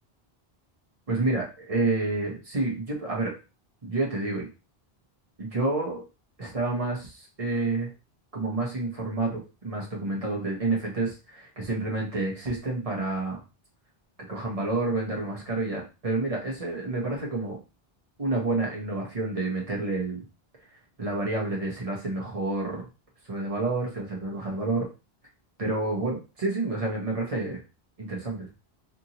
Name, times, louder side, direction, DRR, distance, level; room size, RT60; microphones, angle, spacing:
voice 1, 1.1-3.3 3.8-4.5 5.4-6.0 6.4-7.9 8.3-13.4 14.3-17.6 18.2-20.2 21.0-22.8 23.3-24.9 25.6-27.6 28.0-28.5, right 2 dB, 40° right, -1 dB, 0.8 m, -29 dB
2.7 x 2.6 x 2.8 m, 0.30 s
omnidirectional pair, 1.0 m